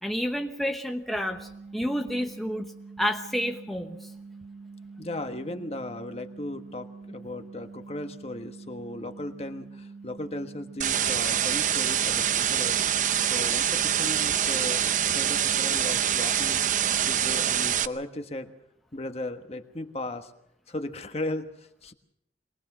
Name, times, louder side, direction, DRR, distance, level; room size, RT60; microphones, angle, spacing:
voice 1, 0.0-2.7 3.0-4.1, equal, ahead, 3 dB, 1.0 m, -30 dB
sound 1, 1.1-17.6, right 4 dB, 65° right, 1.4 m, -45 dB
voice 2, 5.0-12.8 13.3-16.6 17.1-18.5 18.9-20.3 20.7-21.9, left 1 dB, 35° left, 7 dB, 1.4 m, -36 dB
sound 2, 10.8-17.9, right 9 dB, 45° right, 0.7 m, -25 dB
23.0 x 20.0 x 6.1 m, 0.79 s
head